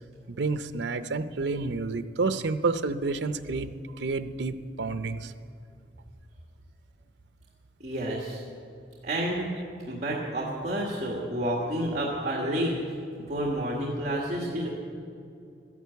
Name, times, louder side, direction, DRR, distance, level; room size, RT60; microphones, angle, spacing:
voice 1, 0.3-5.3, right 3 dB, 85° right, 12 dB, 0.6 m, -29 dB
voice 2, 7.8-8.4 9.0-9.5 9.9-12.7 13.3-14.7, right 1 dB, 40° right, -2 dB, 1.8 m, -29 dB
13.0 x 11.0 x 8.2 m, 2.5 s
head